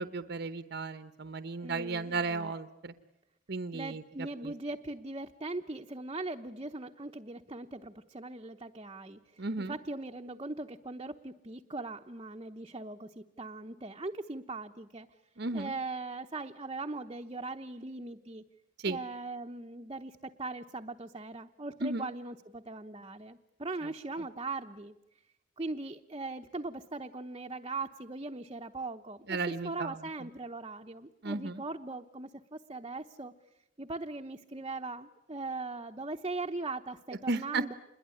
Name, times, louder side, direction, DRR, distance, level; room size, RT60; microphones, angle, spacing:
voice 1, 0.0-2.9 3.5-4.0 4.4-4.5 9.4-9.7 15.4-15.7 18.8-19.0 21.8-22.1 23.8-23.9 29.3-30.0 31.2-31.6 37.3-37.6, right 3 dB, 60° right, 11 dB, 1.0 m, -34 dB
voice 2, 1.6-2.5 3.7-15.1 15.5-18.4 18.8-25.0 25.6-29.4 29.6-33.3 33.8-37.7, right 3 dB, 25° right, 4 dB, 0.9 m, -40 dB
27.5 x 21.5 x 9.8 m, 0.92 s
head